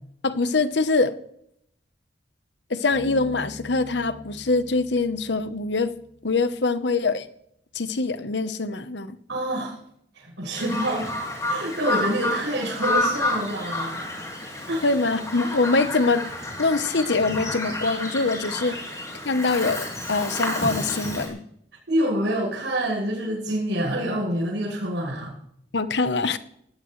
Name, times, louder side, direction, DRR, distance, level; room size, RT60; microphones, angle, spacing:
voice 1, 0.2-1.2 2.7-5.9 6.2-7.3 7.7-9.2 14.8-16.2 16.6-18.8 19.2-21.4 25.7-26.4, left 3 dB, 75° left, 12 dB, 1.0 m, -24 dB
Bass guitar, 2.9-6.4, left 1 dB, 45° left, 4.6 m, -43 dB
voice 2, 9.3-9.8 10.1-11.1 11.5-14.1 14.7-14.9 21.9-25.3, right 1 dB, 80° right, -7 dB, 6.8 m, -27 dB
Bird vocalization bird call bird song, 10.6-21.3, left 2 dB, 20° left, 5.9 m, -30 dB
19.5 x 17.0 x 3.3 m, 0.72 s
head